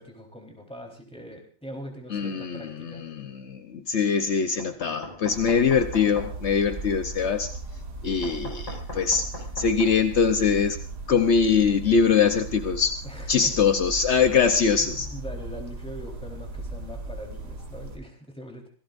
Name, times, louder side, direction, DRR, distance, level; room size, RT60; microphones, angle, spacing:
voice 1, 0.0-3.1 13.0-13.6 14.8-18.7, equal, 5° left, 1 dB, 3.8 m, -42 dB
voice 2, 2.1-7.5 8.0-9.3 9.6-10.8 11.1-12.9 13.3-15.1, left 6 dB, 60° left, 8 dB, 0.7 m, -23 dB
Knock, 4.6-6.3 8.2-9.9, left 1 dB, 80° left, 5.9 m, -39 dB
sound 1, 5.3-18.0, right 2 dB, 50° right, 2.8 m, -37 dB
26.5 x 17.5 x 2.6 m, 0.40 s
omnidirectional pair, 2.3 m